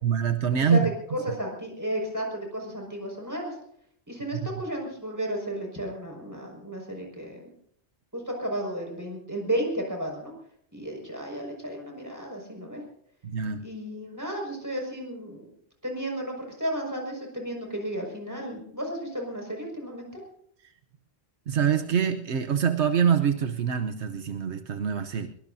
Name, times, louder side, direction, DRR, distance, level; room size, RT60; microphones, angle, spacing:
voice 1, 0.0-0.8 4.3-4.4 13.2-13.6 21.5-25.3, right 7 dB, 80° right, 7 dB, 1.2 m, -25 dB
voice 2, 1.1-3.6 4.1-7.5 8.1-10.3 10.7-12.8 13.6-15.5 15.8-20.2, equal, 15° right, 0 dB, 5.7 m, -33 dB
22.5 x 22.5 x 2.7 m, 0.68 s
omnidirectional pair, 1.1 m